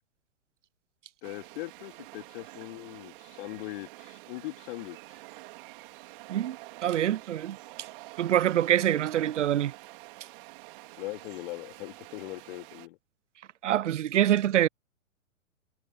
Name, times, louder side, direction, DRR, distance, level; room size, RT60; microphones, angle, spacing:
voice 1, 1.2-5.2 11.0-13.0, left 21 dB, 45° left, 2.8 m, -40 dB
sound 1, 1.2-12.9, right 23 dB, 40° right, 3.1 m, -48 dB
voice 2, 6.8-7.6 8.2-9.7 13.6-14.7, right 11 dB, 65° right, 0.7 m, -25 dB
figure-of-eight pair, 115°, 40 cm